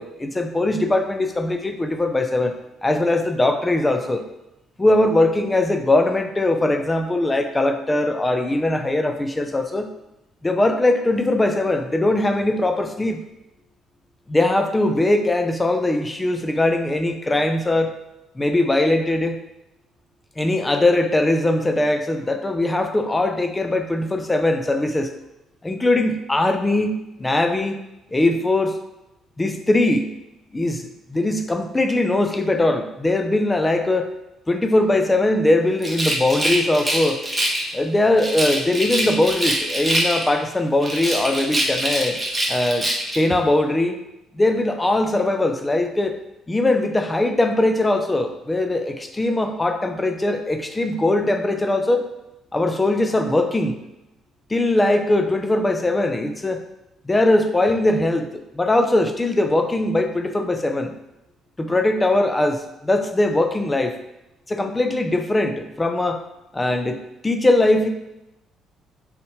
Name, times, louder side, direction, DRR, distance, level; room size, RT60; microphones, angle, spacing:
voice 1, 0.0-2.5 2.8-4.2 4.8-9.9 10.4-13.2 14.3-18.0 18.4-19.4 20.4-25.1 25.6-27.7 28.1-28.8 29.4-30.1 30.5-34.1 34.5-37.2 37.7-42.2 42.5-44.0 44.3-46.2 46.5-52.1 52.5-53.7 54.5-56.6 57.0-60.9 61.6-63.9 64.5-66.2 66.5-67.0 67.2-67.9, left 2 dB, 20° left, 7 dB, 0.9 m, -20 dB
Rattle, 35.8-37.7 38.2-40.4 40.8-43.2, right 1 dB, 15° right, 1.9 m, -24 dB
6.8 x 5.1 x 3.3 m, 0.90 s
hypercardioid pair, 50°, 0 cm